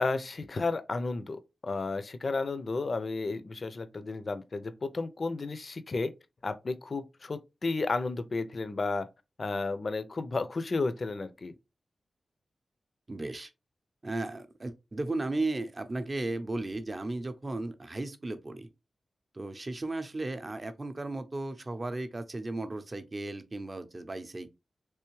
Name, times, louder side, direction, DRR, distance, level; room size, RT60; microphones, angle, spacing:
voice 1, 0.0-6.1 6.4-9.1 9.4-11.5, left 3 dB, 50° left, 0.4 m, -32 dB
voice 2, 13.1-13.5 14.0-18.7 19.3-24.5, right 2 dB, 35° right, 0.6 m, -35 dB
3.4 x 3.1 x 3.1 m
wide cardioid pair, 85°, 0 cm